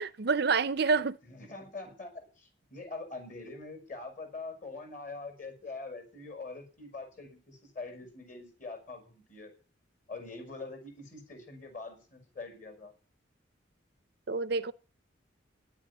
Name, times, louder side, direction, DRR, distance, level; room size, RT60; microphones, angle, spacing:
voice 1, 0.0-1.2 14.3-14.7, right 4 dB, 55° right, 0.6 m, -28 dB
voice 2, 1.2-9.5 10.1-12.9, left 3 dB, 40° left, 5.5 m, -44 dB
11.0 x 8.8 x 9.7 m
head